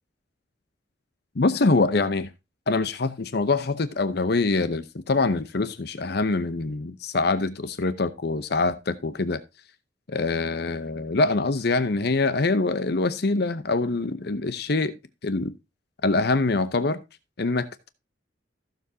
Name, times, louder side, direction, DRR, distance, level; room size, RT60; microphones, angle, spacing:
voice 1, 1.4-2.3 2.7-9.4 10.1-15.0 15.2-15.5 16.0-17.0 17.4-17.9, left 3 dB, 60° left, 0.7 m, -24 dB
15.0 x 7.1 x 2.7 m
head